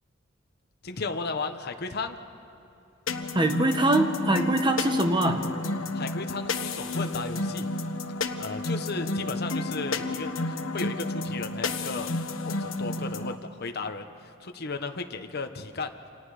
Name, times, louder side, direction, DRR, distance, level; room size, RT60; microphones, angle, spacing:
voice 1, 0.8-2.2 5.9-7.7 8.4-12.1 12.4-15.9, left 3 dB, 55° left, 6 dB, 1.1 m, -35 dB
sound 1, 3.1-13.4, left 2 dB, 85° left, 1.3 m, -31 dB
voice 2, 3.3-5.5, right 1 dB, 25° right, 5 dB, 1.5 m, -23 dB
29.0 x 27.0 x 5.0 m, 2.6 s
head